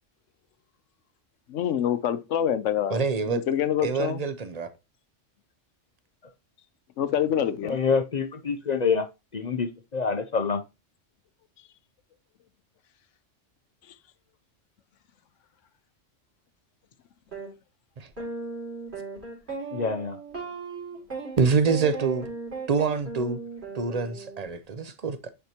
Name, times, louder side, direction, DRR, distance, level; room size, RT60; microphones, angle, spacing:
voice 1, 1.5-3.0 3.3-4.2 7.0-7.8, left 9 dB, 80° left, 1.0 m, -26 dB
voice 2, 2.9-3.4 3.8-4.7 18.0-18.1 21.4-22.3 22.7-23.4 23.7-25.3, right 5 dB, 45° right, 0.6 m, -26 dB
voice 3, 7.6-9.0 9.3-10.6 19.7-20.2, left 5 dB, 50° left, 0.5 m, -26 dB
sound 1, 17.3-17.5 18.2-24.5, right 4 dB, 60° right, 2.9 m, -37 dB
9.3 x 4.4 x 2.9 m
omnidirectional pair, 1.3 m